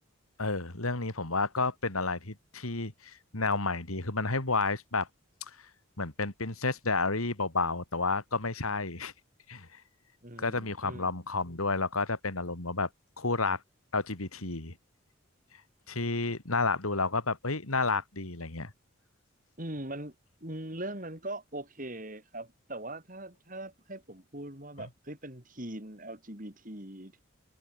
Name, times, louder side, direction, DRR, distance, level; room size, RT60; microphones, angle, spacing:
voice 1, 0.4-5.1 6.0-9.1 9.5-9.8 10.4-12.9 13.2-13.6 13.9-14.7 15.9-18.7, left 3 dB, 90° left, 3.3 m, -31 dB
voice 2, 10.2-11.1 19.6-20.1 20.4-27.2, right 1 dB, 40° right, 4.4 m, -41 dB
head